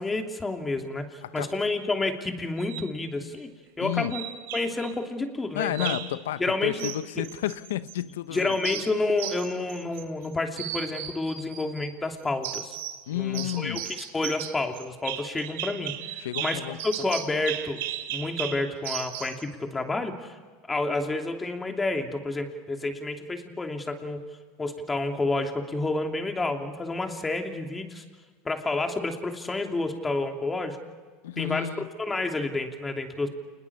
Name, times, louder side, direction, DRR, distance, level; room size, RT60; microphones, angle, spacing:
voice 1, 0.0-3.5 3.8-4.2 4.5-6.0 6.4-7.3 8.3-12.8 13.1-17.8 18.1-20.4 20.7-24.2 24.6-28.0 28.4-30.8 31.4-31.7 32.0-33.3, left 2 dB, 15° left, 2.9 m, -29 dB
sound 1, 2.6-2.9 4.1-4.9 5.7-6.2 6.8-8.0 8.3-10.3 10.6-11.9 12.4-13.0 13.3-19.4, right 12 dB, 80° right, 3.0 m, -36 dB
voice 2, 3.8-4.2 5.5-8.6 13.1-13.9 16.2-16.8 31.2-31.9, left 13 dB, 85° left, 0.8 m, -31 dB
28.0 x 21.0 x 7.1 m
supercardioid pair, 110°, 0 cm